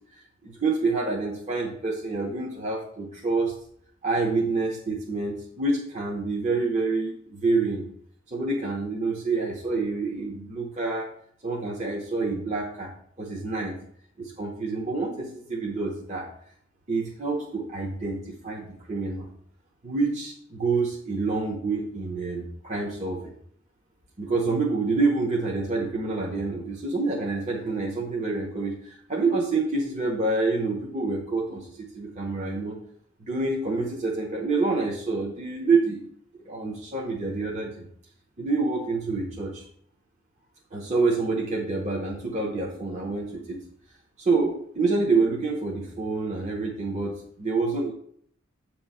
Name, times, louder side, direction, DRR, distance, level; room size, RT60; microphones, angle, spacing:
voice 1, 0.4-3.5 4.0-7.8 8.3-11.1 11.4-12.9 13.2-13.8 14.2-16.3 16.9-19.3 19.8-23.3 24.2-32.8 33.2-36.0 36.4-37.8 38.4-39.6 40.7-43.6 44.2-47.9, right 3 dB, 35° right, -2 dB, 0.8 m, -27 dB
8.1 x 3.1 x 5.4 m, 0.65 s
head